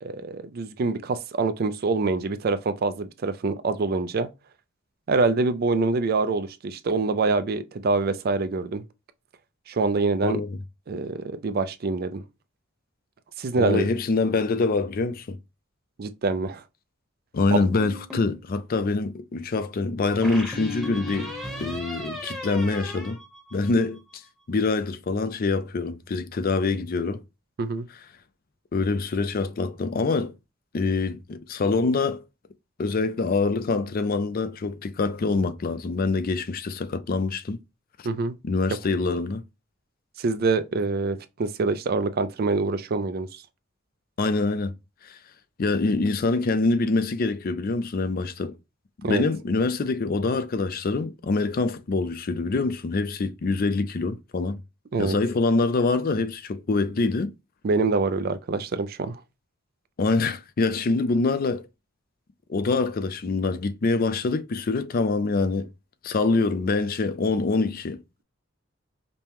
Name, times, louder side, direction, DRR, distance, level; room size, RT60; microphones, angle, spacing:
voice 1, 0.0-4.3 5.1-8.8 9.7-10.4 10.9-12.2 13.4-13.9 16.0-16.6 17.5-17.7 27.6-27.9 38.0-38.4 40.2-43.4 49.0-49.2 54.9-55.2 57.6-59.2, right 3 dB, 50° right, 0.4 m, -25 dB
voice 2, 13.6-15.4 17.3-21.3 21.6-23.2 23.5-24.2 24.5-27.2 28.7-30.3 30.7-32.2 32.8-37.6 38.4-39.4 44.2-44.7 45.0-45.2 45.6-48.6 49.0-54.6 55.0-57.3 60.0-61.6 62.5-65.7 66.0-68.2, left 3 dB, 45° left, 0.4 m, -25 dB
sound 1, 17.5-18.4 20.2-24.0, left 1 dB, ahead, 0.9 m, -36 dB
5.2 x 2.2 x 2.9 m
head